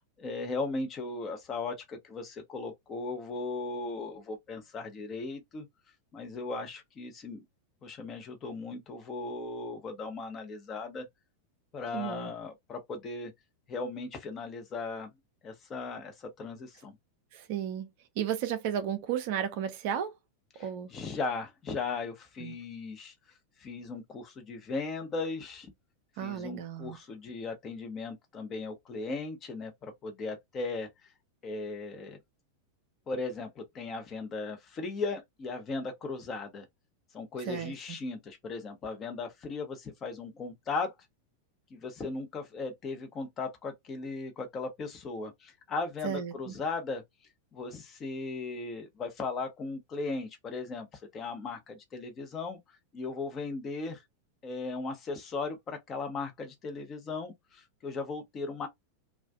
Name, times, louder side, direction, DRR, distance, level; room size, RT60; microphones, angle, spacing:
voice 1, 0.2-5.7 6.1-7.4 7.8-11.1 11.7-13.3 13.7-15.1 15.4-17.0 20.5-23.1 23.6-25.7 26.2-30.9 31.4-32.2 33.1-36.7 37.1-40.9 41.7-47.0 47.5-50.9 51.1-52.6 52.9-54.0 54.4-58.7, left 3 dB, 25° left, 0.7 m, -37 dB
voice 2, 11.9-12.3 17.3-17.9 18.2-20.1 20.6-20.9 22.4-22.5 26.2-27.0 37.5-37.7 46.0-46.5, right 9 dB, 50° right, 0.5 m, -33 dB
2.4 x 2.2 x 2.3 m
figure-of-eight pair, 90°, 0 cm